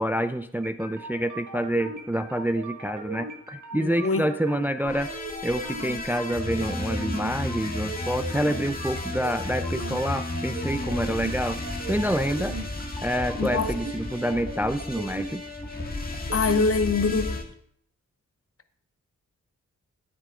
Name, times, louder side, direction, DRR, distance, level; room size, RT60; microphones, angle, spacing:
voice 1, 0.0-5.1 5.4-12.5 13.0-15.4, equal, 5° right, 0.4 m, -27 dB
sound 1, 0.6-16.6, right 2 dB, 60° right, 1.5 m, -39 dB
voice 2, 3.7-4.3 13.3-13.7 16.3-17.4, left 4 dB, 45° left, 0.9 m, -24 dB
sound 2, 4.8-17.4, left 2 dB, 25° left, 1.7 m, -33 dB
9.2 x 8.1 x 3.7 m
cardioid pair, 45°, 33 cm